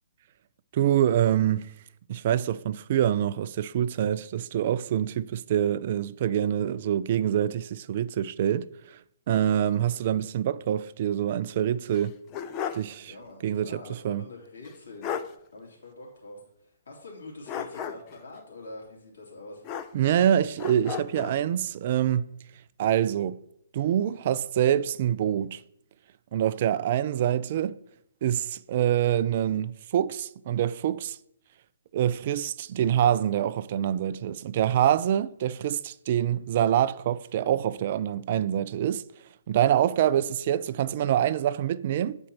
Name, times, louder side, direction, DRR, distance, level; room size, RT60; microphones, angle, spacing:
voice 1, 0.7-1.7 2.1-9.0 9.3-12.1 12.7-13.1 13.4-14.2 19.9-22.3 22.8-23.4 23.7-25.6 26.3-27.8 28.2-31.2 31.9-39.0 39.5-42.2, right 10 dB, 45° right, 0.3 m, -25 dB
sound 1, 11.9-12.9 13.3-13.4 14.6-14.7 15.0-15.3 17.5-18.2 19.6-20.2 20.6-21.4, left 8 dB, 25° left, 0.4 m, -34 dB
voice 2, 13.1-15.1 15.5-19.6, left 2 dB, 65° left, 2.6 m, -45 dB
8.3 x 4.4 x 4.3 m
figure-of-eight pair, 130°, 0 cm